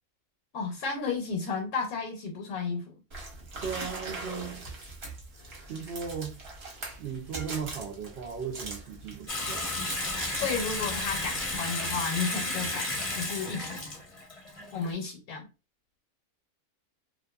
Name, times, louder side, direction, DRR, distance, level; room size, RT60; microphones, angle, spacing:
voice 1, 0.5-2.8 10.3-12.9 13.1-13.8 14.7-15.5, left 5 dB, 75° left, 1.1 m, -32 dB
sound 1, 3.1-11.6, right 2 dB, 50° right, 0.9 m, -42 dB
voice 2, 3.6-4.7 5.7-6.4 7.0-9.9, right 6 dB, 75° right, 0.5 m, -37 dB
Water tap faucet / Sink (filling or washing) / Bathtub (filling or washing), 9.3-14.9, left 2 dB, 30° left, 0.6 m, -33 dB
2.5 x 2.5 x 2.2 m
omnidirectional pair, 1.6 m